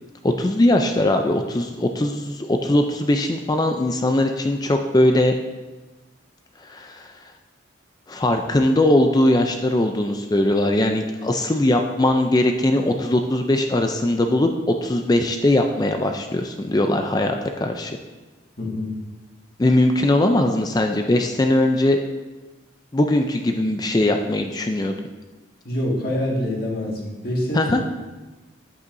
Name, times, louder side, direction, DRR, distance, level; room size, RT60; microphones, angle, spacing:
voice 1, 0.2-5.3 6.6-7.3 8.1-18.0 19.6-22.0 22.9-24.9 27.5-27.8, left 1 dB, 20° left, 5 dB, 0.4 m, -20 dB
voice 2, 18.6-18.9 25.6-27.7, left 1 dB, 50° left, -3 dB, 1.9 m, -25 dB
10.5 x 8.3 x 2.6 m, 1.2 s
head